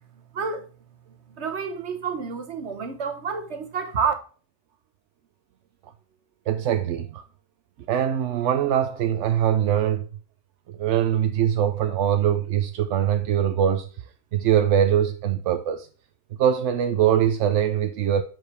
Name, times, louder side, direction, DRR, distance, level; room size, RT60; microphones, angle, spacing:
voice 1, 0.3-0.7 1.3-4.1, right 6 dB, 65° right, 1.4 m, -29 dB
voice 2, 6.5-7.2 7.9-10.1 10.8-13.9 14.3-15.9 16.4-18.2, right 10 dB, 85° right, 0.9 m, -22 dB
7.7 x 6.4 x 3.3 m
omnidirectional pair, 1.2 m